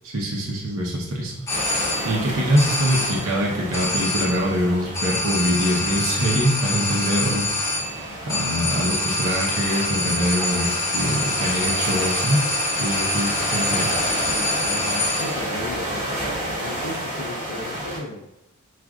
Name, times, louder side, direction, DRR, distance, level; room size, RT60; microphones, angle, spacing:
voice 1, 0.1-1.8 2.0-7.5 8.3-12.5 12.8-14.0, equal, 70° right, -2 dB, 0.8 m, -24 dB
sound 1, 1.5-2.3 2.6-3.4 3.7-4.6 4.9-15.5, left 2 dB, 10° left, 0.5 m, -26 dB
sound 2, 1.5-18.0, right 1 dB, 30° right, 1.0 m, -31 dB
voice 2, 14.2-16.3 16.6-18.3, left 2 dB, 80° left, -4 dB, 0.6 m, -35 dB
6.1 x 2.5 x 2.4 m, 0.88 s
head